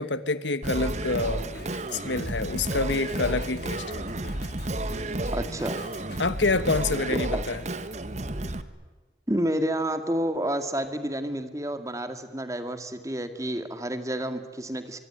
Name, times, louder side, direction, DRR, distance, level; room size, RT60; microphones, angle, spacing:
voice 1, 0.0-1.5 1.9-4.0 6.2-7.6, left 3 dB, 85° left, 14 dB, 1.4 m, -27 dB
Singing, 0.6-8.6, right 2 dB, 40° right, 1.3 m, -32 dB
Drum kit, 0.9-6.2, left 1 dB, 65° left, 3.3 m, -44 dB
voice 2, 5.3-5.8 7.3-7.4 9.3-15.0, right 1 dB, 20° right, 9 dB, 2.0 m, -29 dB
24.0 x 23.5 x 9.9 m, 1.4 s
head